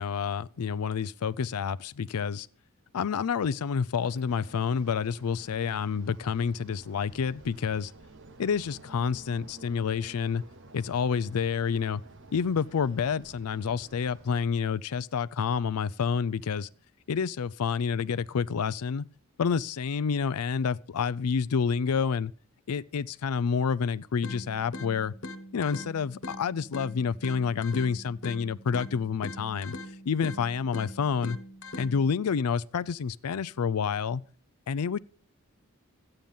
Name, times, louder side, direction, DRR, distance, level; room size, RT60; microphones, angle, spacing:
voice 1, 0.0-2.5 2.9-7.9 8.4-10.4 10.7-12.0 12.3-16.7 17.1-19.0 19.4-22.3 22.7-25.1 25.5-29.8 30.1-31.4 31.8-34.2 34.7-35.0, left 6 dB, 85° left, 0.4 m, -28 dB
sound 1, 4.0-14.4, right 2 dB, 55° right, 0.9 m, -51 dB
sound 2, 24.2-32.2, left 2 dB, 65° left, 1.4 m, -42 dB
13.5 x 8.9 x 5.3 m
head